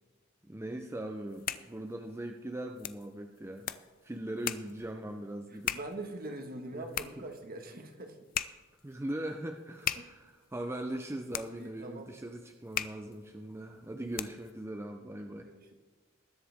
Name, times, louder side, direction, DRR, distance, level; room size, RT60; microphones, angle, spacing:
voice 1, 0.4-3.7 4.0-5.8 6.7-6.9 7.2-7.3 8.8-15.5, right 1 dB, 10° right, 5 dB, 0.5 m, -40 dB
sound 1, 1.1-14.6, left 10 dB, 45° left, 0.4 m, -41 dB
voice 2, 5.5-8.2 9.9-10.0 11.5-12.1 15.4-15.7, right 2 dB, 45° right, 5 dB, 1.5 m, -43 dB
20.0 x 7.8 x 3.5 m, 1.3 s
head